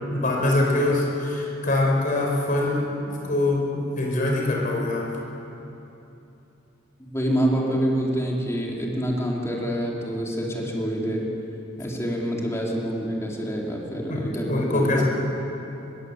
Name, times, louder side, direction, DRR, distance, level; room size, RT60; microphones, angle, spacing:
voice 1, 0.1-5.1 14.1-14.2 14.5-15.0, left 2 dB, 45° left, -1 dB, 4.8 m, -23 dB
voice 2, 7.1-11.3 11.8-15.0, equal, 15° left, -2 dB, 4.0 m, -26 dB
26.0 x 22.5 x 8.3 m, 2.9 s
head